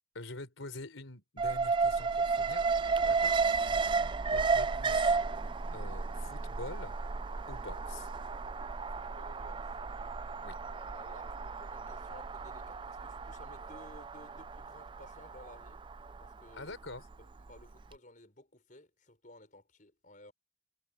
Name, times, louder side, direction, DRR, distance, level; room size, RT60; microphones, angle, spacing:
voice 1, 0.1-2.6 3.0-3.3 4.3-5.2 5.7-7.0 7.5-8.1 10.4-10.6 16.5-17.0, left 2 dB, 85° left, 4.3 m, -45 dB
Alarm, 1.4-17.5 17.8-17.9, right 4 dB, 25° right, 0.4 m, -33 dB
voice 2, 2.9-3.4 3.9-4.5 8.9-9.7 10.6-15.8 16.2-16.8 17.2-20.3, left 1 dB, 40° left, 6.3 m, -57 dB
head